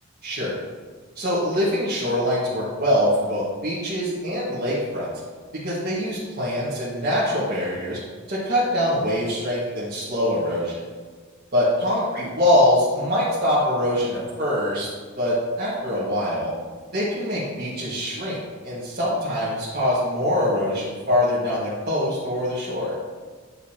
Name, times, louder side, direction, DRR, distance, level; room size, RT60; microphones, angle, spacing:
voice 1, 0.2-0.6 1.1-5.1 5.5-8.0 8.3-10.8 11.5-14.9 15.2-16.5 16.9-22.9, left 1 dB, 45° right, -10 dB, 1.6 m, -23 dB
9.5 x 4.9 x 2.9 m, 1.5 s
head